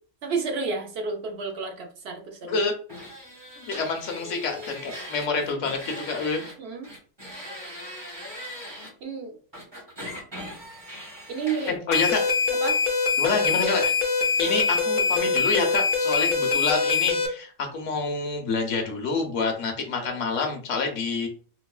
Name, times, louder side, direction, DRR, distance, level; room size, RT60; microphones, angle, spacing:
voice 1, 0.2-2.6 6.6-6.9 9.0-9.4 11.3-11.8 12.6-12.8 20.0-20.1, right 4 dB, 60° right, 3 dB, 0.9 m, -31 dB
sound 1, 2.9-6.5 6.8-8.9 9.5-11.8, left 1 dB, 20° right, 1.1 m, -40 dB
voice 2, 3.7-6.4 11.7-12.2 13.2-13.9 14.4-21.3, left 4 dB, 70° left, 3 dB, 1.1 m, -27 dB
sound 2, 11.9-17.3, left 4 dB, 50° left, 0.8 m, -23 dB
4.6 x 2.2 x 2.3 m, 0.41 s
omnidirectional pair, 1.3 m